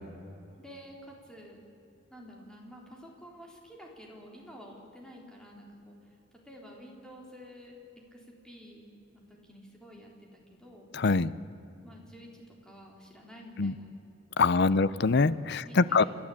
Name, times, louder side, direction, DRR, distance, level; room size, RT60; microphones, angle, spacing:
voice 1, 0.6-1.6 2.1-6.2 6.4-7.8 8.1-10.9 11.8-13.9 14.7-15.0 15.6-16.1, equal, 5° left, -1 dB, 3.8 m, -50 dB
voice 2, 10.9-11.3 13.6-13.7 14.4-16.0, left 4 dB, 60° left, 17 dB, 0.6 m, -24 dB
30.0 x 12.5 x 8.6 m, 2.8 s
head